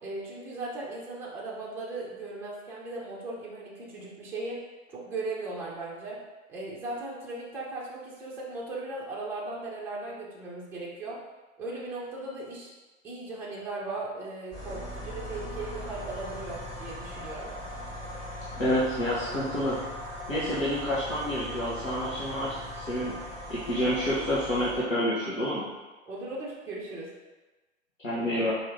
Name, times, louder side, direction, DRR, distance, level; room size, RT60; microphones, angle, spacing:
voice 1, 0.0-4.6 4.9-6.2 6.5-11.2 11.6-12.7 13.0-17.5 26.1-27.1, right 2 dB, 5° right, -5 dB, 0.5 m, -37 dB
sound 1, 14.5-24.8, left 1 dB, 20° left, 1.3 m, -39 dB
voice 2, 18.5-19.8 20.3-23.2 23.5-25.7 28.0-28.5, equal, 80° left, -9 dB, 1.1 m, -28 dB
4.5 x 2.6 x 3.5 m, 1.2 s
figure-of-eight pair, 100°, 39 cm